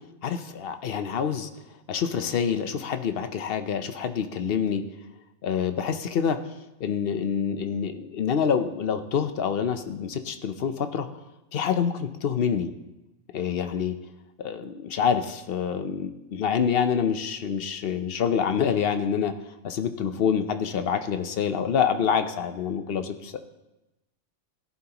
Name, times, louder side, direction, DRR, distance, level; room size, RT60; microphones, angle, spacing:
voice 1, 0.2-1.5 1.9-4.9 5.4-6.4 6.8-11.1 11.5-12.7 13.3-13.9 14.4-19.4 19.6-23.4, left 7 dB, 55° left, 9 dB, 0.9 m, -26 dB
17.0 x 11.0 x 2.9 m, 0.98 s
omnidirectional pair, 1.3 m